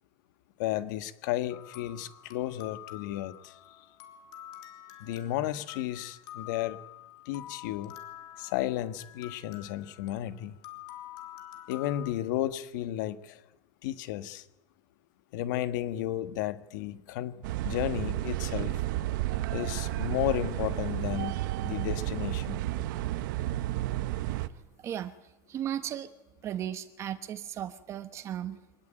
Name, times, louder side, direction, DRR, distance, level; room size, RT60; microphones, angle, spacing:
voice 1, 0.6-3.6 5.0-6.8 7.2-7.9 8.4-10.6 11.7-13.4 13.8-14.4 15.3-18.8 19.5-22.6, left 13 dB, 70° left, 12 dB, 1.7 m, -33 dB
sound 1, 1.5-12.1, left 13 dB, 45° left, 3.3 m, -48 dB
sound 2, 17.4-24.5, right 15 dB, 85° right, 1.3 m, -32 dB
voice 2, 25.5-26.1 26.4-28.6, right 10 dB, 25° right, 12 dB, 1.2 m, -35 dB
25.0 x 19.5 x 9.1 m, 0.93 s
cardioid pair, 180°, 10 cm